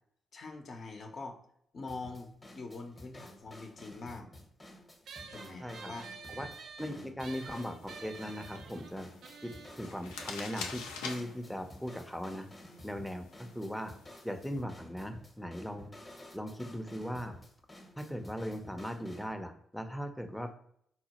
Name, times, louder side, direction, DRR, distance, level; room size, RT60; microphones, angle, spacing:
voice 1, 0.3-1.4 1.7-4.3 5.3-6.4 6.9-7.1, left 3 dB, 55° left, 4 dB, 0.7 m, -44 dB
sound 1, 1.9-19.3, left 1 dB, 25° left, 0.8 m, -53 dB
sound 2, 5.1-11.9, right 5 dB, 70° right, 0.4 m, -50 dB
voice 2, 5.6-5.9 6.2-6.5 6.8-9.1 9.4-12.5 12.8-13.9 14.2-16.0 16.3-17.3 18.0-20.5, equal, ahead, 6 dB, 0.6 m, -39 dB
sound 3, 7.2-14.6, left 5 dB, 90° left, 0.4 m, -47 dB
4.1 x 2.1 x 2.9 m, 0.68 s
supercardioid pair, 50°, 0 cm